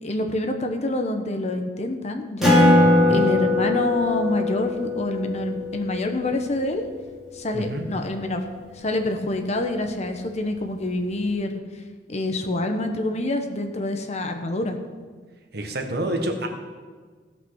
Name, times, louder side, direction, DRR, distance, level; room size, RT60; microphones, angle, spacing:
voice 1, 0.0-2.6 3.1-6.8 7.3-8.4 8.7-11.6 12.1-14.8, left 1 dB, 40° left, 5 dB, 1.1 m, -26 dB
Acoustic guitar, 2.4-7.4, left 1 dB, ahead, 3.2 m, -21 dB
voice 2, 2.8-3.2 7.5-7.8 15.5-16.5, right 1 dB, 65° right, 4 dB, 1.5 m, -28 dB
16.5 x 5.5 x 6.4 m, 1.5 s
head